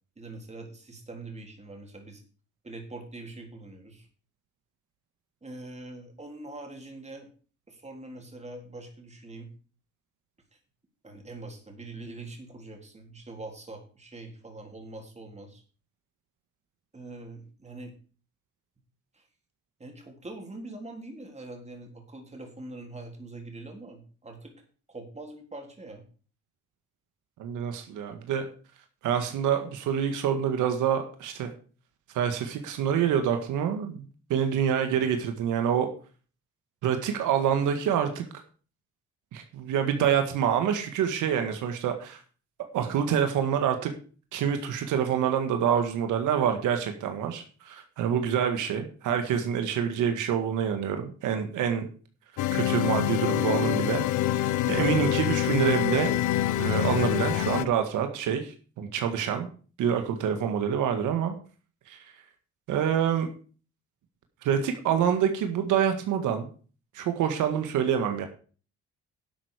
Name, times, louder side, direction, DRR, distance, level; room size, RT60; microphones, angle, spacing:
voice 1, 0.2-2.2 2.6-4.1 5.4-7.3 7.7-9.5 11.0-15.6 16.9-17.9 19.1-19.3 19.8-24.6 24.9-26.0, right 2 dB, 20° right, 2 dB, 3.8 m, -43 dB
voice 2, 27.4-28.5 29.0-31.5 32.1-34.0 34.3-35.9 36.8-38.2 39.3-42.2 42.7-43.9 44.3-51.9 52.5-56.1 56.6-59.5 59.8-61.3 61.9-62.0 62.7-63.3 64.4-66.5 66.9-68.3, right 8 dB, 90° right, 6 dB, 1.7 m, -26 dB
sound 1, 52.4-57.6, left 13 dB, 80° left, 0.8 m, -26 dB
11.5 x 7.9 x 5.0 m, 0.40 s
cardioid pair, 90°, 30 cm